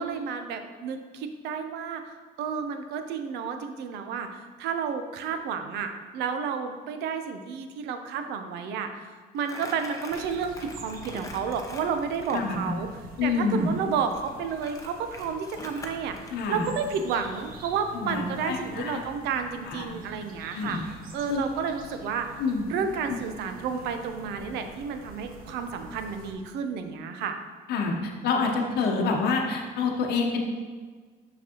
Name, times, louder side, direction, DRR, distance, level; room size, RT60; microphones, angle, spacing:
voice 1, 0.0-8.9 9.3-12.9 13.2-16.2 16.5-20.8 21.1-22.4 22.7-27.4, right 6 dB, 85° right, 7 dB, 0.6 m, -31 dB
Crumpling crinkling, 9.4-12.5 14.1-16.3, left 2 dB, 20° left, 0.8 m, -43 dB
sound 1, 10.1-26.3, right 2 dB, 55° right, 1.0 m, -47 dB
voice 2, 12.3-12.8 13.2-13.7 16.3-16.7 17.9-19.0 19.6-20.0 20.5-20.8 21.3-21.4 22.4-22.7 27.7-30.4, left 4 dB, 70° left, 1 dB, 0.8 m, -27 dB
6.0 x 5.9 x 2.9 m, 1.5 s
cardioid pair, 110°, 17 cm